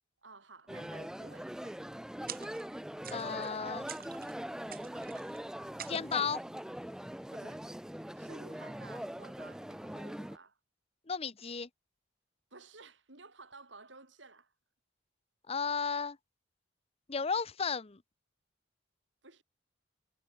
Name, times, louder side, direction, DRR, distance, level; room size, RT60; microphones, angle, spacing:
voice 1, 0.2-1.8 7.3-7.7 8.1-10.6 12.5-14.5 19.2-19.4, right 3 dB, 70° right, 4.8 m, -54 dB
sound 1, 0.7-10.4, equal, 5° right, 0.4 m, -42 dB
sound 2, 2.3-2.8 3.0-3.5 3.9-4.4 4.7-5.4 5.8-6.4, right 10 dB, 50° right, 3.1 m, -47 dB
voice 2, 3.1-3.9 5.9-6.4 11.1-11.7 15.5-16.2 17.1-18.0, left 5 dB, 30° left, 0.7 m, -34 dB
head